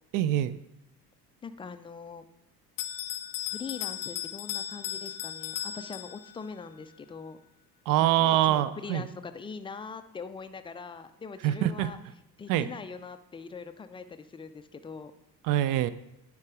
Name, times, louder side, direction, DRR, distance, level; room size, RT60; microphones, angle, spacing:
voice 1, 0.1-0.6 7.9-9.0 11.4-11.9 12.5-12.7 15.4-15.9, right 12 dB, 45° right, 15 dB, 0.5 m, -24 dB
voice 2, 1.4-2.3 3.5-7.4 8.0-12.0 12.4-15.1, left 5 dB, 15° left, 10 dB, 0.3 m, -42 dB
Bell, 2.8-6.5, left 11 dB, 85° left, 0.6 m, -36 dB
10.5 x 4.7 x 3.6 m, 0.84 s
figure-of-eight pair, 55°, 47 cm